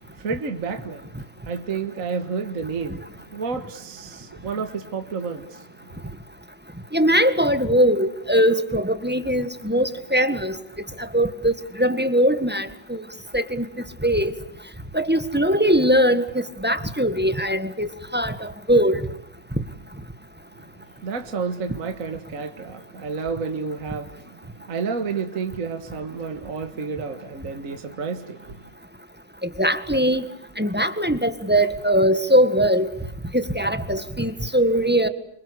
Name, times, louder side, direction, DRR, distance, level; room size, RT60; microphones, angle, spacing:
voice 1, 0.1-6.0 21.0-28.7, right 5 dB, 45° right, 2.0 m, -31 dB
voice 2, 6.9-10.5 11.1-11.5 11.8-13.0 13.3-13.6 14.0-14.3 14.9-17.9 18.1-19.0 29.6-30.2 30.6-32.9 33.3-35.1, equal, 5° right, 1.5 m, -20 dB
27.5 x 25.5 x 8.3 m
omnidirectional pair, 2.1 m